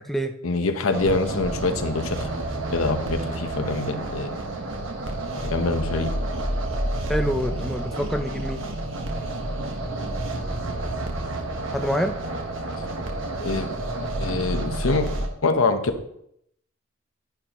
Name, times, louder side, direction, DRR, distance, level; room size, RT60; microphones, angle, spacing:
voice 1, 0.4-2.3 2.7-4.4 5.4-6.1 13.4-13.7 14.2-15.1 15.4-15.8, left 3 dB, 80° left, 7 dB, 1.0 m, -24 dB
sound 1, 0.9-15.3, right 1 dB, 65° right, 1.3 m, -29 dB
voice 2, 7.1-8.6 11.7-12.1, equal, ahead, 5 dB, 0.5 m, -26 dB
11.0 x 10.5 x 3.0 m, 0.74 s
head